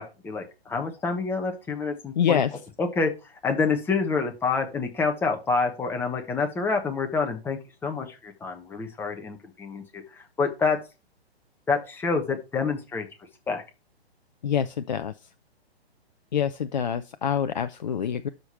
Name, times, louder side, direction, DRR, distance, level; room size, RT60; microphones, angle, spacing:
voice 1, 0.0-2.4 2.8-3.1 3.4-10.8 11.7-13.1 13.5-13.6, left 4 dB, 5° left, 1.2 m, -27 dB
voice 2, 2.2-2.5 14.4-15.1 16.3-18.3, left 8 dB, 45° left, 0.5 m, -26 dB
12.5 x 5.2 x 4.3 m
figure-of-eight pair, 125°, 32 cm